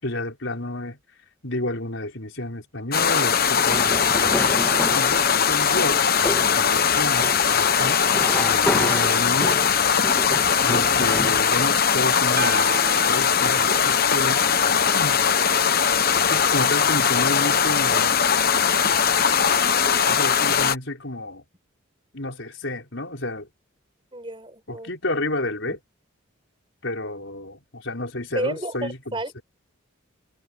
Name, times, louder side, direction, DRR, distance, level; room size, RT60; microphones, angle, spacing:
voice 1, 0.0-1.0 1.4-4.4 4.9-6.2 6.6-8.0 8.4-9.6 10.6-15.3 16.3-18.2 20.1-21.4 22.1-23.5 24.7-25.8 26.8-29.4, left 1 dB, 60° left, 5.6 m, -31 dB
sound 1, 2.9-20.8, left 7 dB, 45° left, 1.1 m, -20 dB
sound 2, 3.6-11.4, left 1 dB, 5° left, 2.1 m, -31 dB
sound 3, 12.4-14.8, right 1 dB, 45° right, 2.0 m, -33 dB
voice 2, 24.1-24.9 25.7-25.8 28.3-29.4, right 1 dB, 25° right, 5.4 m, -31 dB
head